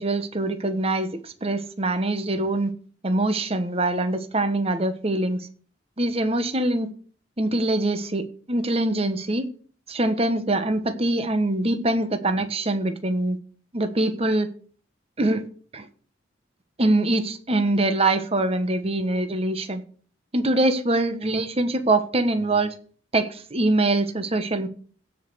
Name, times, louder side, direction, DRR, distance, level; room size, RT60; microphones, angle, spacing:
voice 1, 0.0-2.7 3.0-5.4 6.0-6.9 7.4-9.5 9.9-13.4 13.7-14.5 15.2-15.5 15.7-15.9 16.8-19.8 20.3-22.7 23.1-24.7, right 2 dB, 30° right, 10 dB, 1.2 m, -23 dB
16.5 x 5.4 x 6.2 m, 0.43 s
head